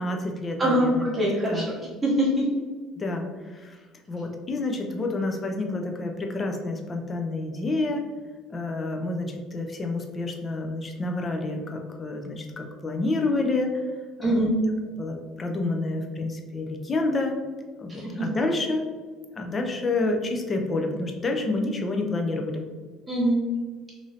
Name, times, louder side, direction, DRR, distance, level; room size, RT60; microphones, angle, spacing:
voice 1, 0.0-1.1 1.5-1.7 3.0-3.8 4.1-8.0 8.5-13.8 14.2-14.5 15.0-17.4 17.8-18.9 19.3-22.6, left 2 dB, 15° left, 3 dB, 0.4 m, -28 dB
voice 2, 0.6-1.6 2.0-2.5 14.2-14.6 17.9-18.3 23.1-23.4, equal, 5° right, -9 dB, 0.9 m, -23 dB
3.0 x 2.6 x 3.9 m, 1.5 s
cardioid pair, 180°, 0 cm